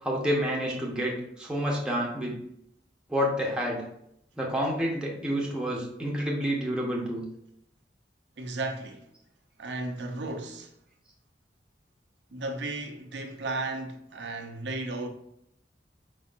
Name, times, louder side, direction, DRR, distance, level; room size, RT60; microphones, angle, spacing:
voice 1, 0.0-2.3 3.1-3.8 4.4-7.2, equal, 5° right, 0.9 m, -29 dB
voice 2, 8.4-9.1 9.6-10.7 12.3-15.1, right 2 dB, 80° right, 0.6 m, -34 dB
4.5 x 4.2 x 2.5 m
head